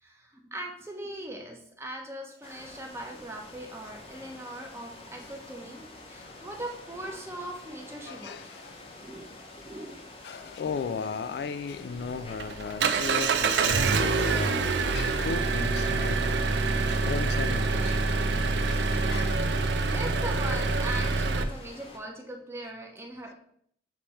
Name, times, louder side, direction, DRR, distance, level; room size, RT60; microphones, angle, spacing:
voice 1, 0.0-8.4 9.0-9.3 9.6-10.0 19.8-23.3, right 1 dB, 15° right, 0.9 m, -40 dB
sound 1, 2.4-22.0, left 2 dB, 30° left, 0.8 m, -48 dB
voice 2, 8.1-8.9 10.2-14.7 14.9-16.3 16.9-18.0 18.7-19.4, left 5 dB, 65° left, 0.3 m, -36 dB
Engine, 11.9-21.4, right 4 dB, 80° right, 0.5 m, -26 dB
7.2 x 3.3 x 4.3 m
head